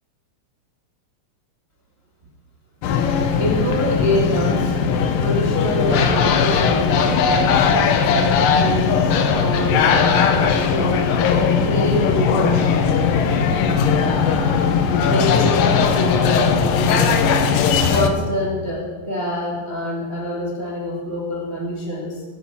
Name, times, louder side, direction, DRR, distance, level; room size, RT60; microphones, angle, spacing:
sound 1, 2.8-18.1, left 6 dB, 80° left, 2.5 m, -18 dB
voice 1, 3.4-4.7 5.2-7.7 8.6-11.1 11.6-13.0 15.0-17.4 17.9-22.2, equal, 25° right, -4 dB, 1.6 m, -26 dB
16.0 x 9.8 x 5.7 m, 1.5 s
omnidirectional pair, 3.9 m